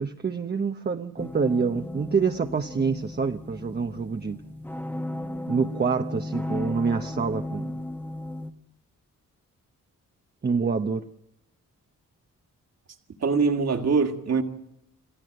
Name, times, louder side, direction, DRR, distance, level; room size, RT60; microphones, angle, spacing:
voice 1, 0.0-4.4 5.5-7.7 10.4-11.0, right 5 dB, 30° right, 0.9 m, -26 dB
sound 1, 1.2-8.5, left 1 dB, 5° left, 1.2 m, -35 dB
voice 2, 13.2-14.4, right 4 dB, 55° right, 2.1 m, -23 dB
28.0 x 14.0 x 7.8 m
cardioid pair, 95°, 31 cm